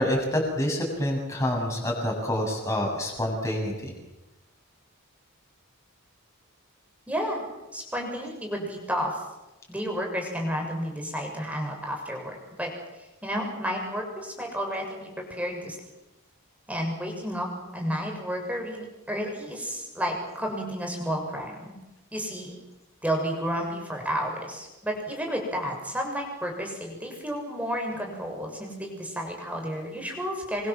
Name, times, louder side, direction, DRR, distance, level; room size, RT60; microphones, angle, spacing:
voice 1, 0.0-3.9, left 1 dB, 15° left, 0 dB, 8.0 m, -27 dB
voice 2, 7.1-7.4 7.7-9.2 9.7-12.7 13.2-15.8 16.7-17.5 17.7-21.7 22.1-22.6 23.0-30.7, equal, 5° right, 1 dB, 6.9 m, -31 dB
28.5 x 25.0 x 7.7 m, 1.0 s
head